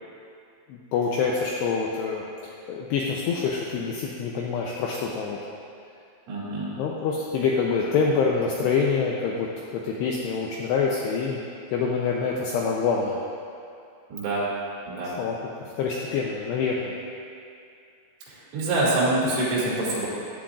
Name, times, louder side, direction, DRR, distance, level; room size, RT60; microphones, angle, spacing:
voice 1, 0.7-5.4 6.8-11.4 11.7-13.2 15.2-15.4 15.8-17.0 19.2-19.3, left 5 dB, 90° left, -2 dB, 2.4 m, -26 dB
voice 2, 6.3-6.7 14.1-14.4 14.9-15.1 18.3-20.1, right 2 dB, 80° right, -7 dB, 5.2 m, -25 dB
15.5 x 10.0 x 2.5 m, 2.5 s
omnidirectional pair, 5.7 m